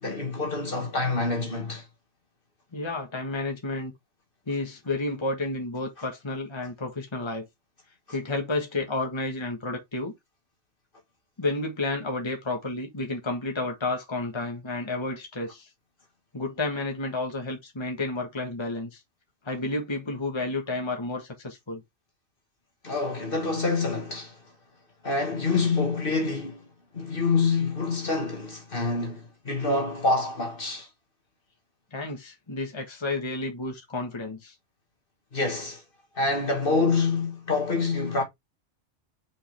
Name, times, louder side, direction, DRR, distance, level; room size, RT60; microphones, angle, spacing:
voice 1, 0.0-1.9 22.8-24.4 25.0-26.7 26.9-30.9 35.3-35.8 36.1-38.2, left 3 dB, 45° left, 2.0 m, -26 dB
voice 2, 2.7-3.9 4.5-7.5 8.1-10.1 11.4-15.7 16.3-19.0 19.4-21.8 31.9-34.5, left 2 dB, 25° left, 1.6 m, -31 dB
5.5 x 5.2 x 3.4 m
omnidirectional pair, 1.2 m